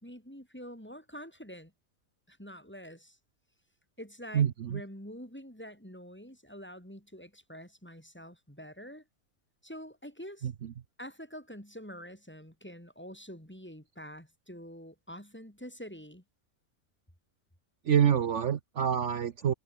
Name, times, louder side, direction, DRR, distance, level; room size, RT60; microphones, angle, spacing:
voice 1, 0.0-1.7 2.3-3.2 4.0-9.0 9.6-10.5 11.0-16.2, equal, 5° left, 5.1 m, -46 dB
voice 2, 4.3-4.8 10.4-10.7 17.8-19.5, right 9 dB, 60° right, 1.2 m, -27 dB
omnidirectional pair, 1.5 m